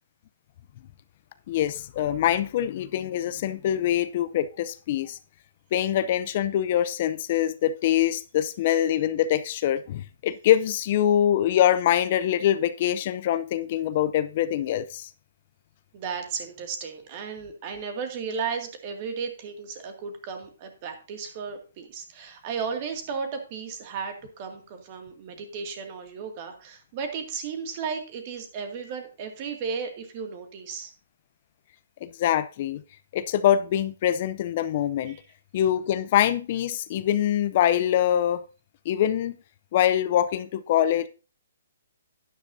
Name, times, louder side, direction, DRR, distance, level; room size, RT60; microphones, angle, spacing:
voice 1, 1.5-5.2 5.7-15.1 32.0-32.8 33.1-35.2 35.5-38.4 38.9-39.4 39.7-41.1, left 11 dB, 40° left, 0.5 m, -24 dB
voice 2, 15.9-30.9 35.1-35.2, right 6 dB, 35° right, 2.2 m, -34 dB
11.5 x 9.9 x 2.7 m
hypercardioid pair, 145°, 0 cm